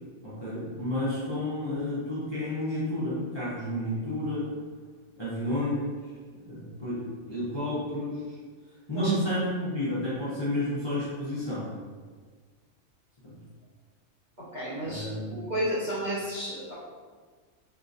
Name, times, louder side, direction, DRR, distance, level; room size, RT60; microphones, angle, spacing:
voice 1, 0.2-4.5 5.2-6.0 6.5-8.4 8.9-11.7 13.2-13.3 14.8-15.4, left 1 dB, 30° left, -10 dB, 0.6 m, -31 dB
voice 2, 14.5-16.7, equal, 45° right, -9 dB, 0.7 m, -32 dB
3.7 x 2.6 x 2.5 m, 1.5 s
omnidirectional pair, 1.4 m